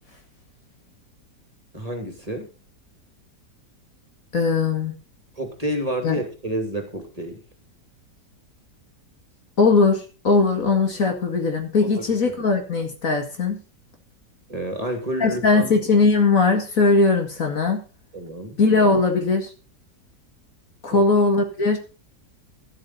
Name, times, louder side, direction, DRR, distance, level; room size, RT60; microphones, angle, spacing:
voice 1, 1.7-2.5 5.4-7.4 11.8-11.9 14.5-15.6 18.1-18.6 20.9-21.0, equal, 20° right, 4 dB, 2.7 m, -29 dB
voice 2, 4.3-4.9 6.0-6.2 9.6-13.6 15.2-17.8 18.6-19.5 20.8-21.8, left 3 dB, 55° left, 4 dB, 2.3 m, -19 dB
12.5 x 12.0 x 4.2 m, 0.33 s
omnidirectional pair, 1.8 m